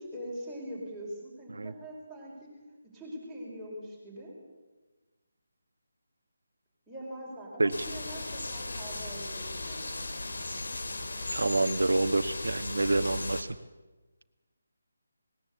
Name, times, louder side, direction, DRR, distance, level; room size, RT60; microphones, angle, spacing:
voice 1, 0.0-2.5 2.9-4.3 6.9-10.1, equal, ahead, -7 dB, 4.8 m, -42 dB
sound 1, 7.7-13.4, left 2 dB, 65° left, 2.7 m, -37 dB
voice 2, 11.3-13.5, right 2 dB, 85° right, 9 dB, 1.2 m, -27 dB
19.5 x 18.0 x 8.4 m, 1.2 s
hypercardioid pair, 175°, 0 cm